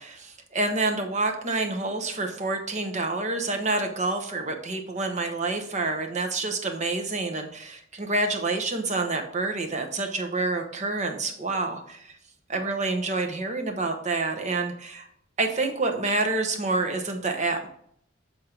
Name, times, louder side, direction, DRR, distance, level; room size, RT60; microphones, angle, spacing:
voice 1, 0.0-12.2 12.5-15.1 15.4-17.7, right 3 dB, 35° right, 5 dB, 1.0 m, -28 dB
7.5 x 4.4 x 3.8 m, 0.67 s
head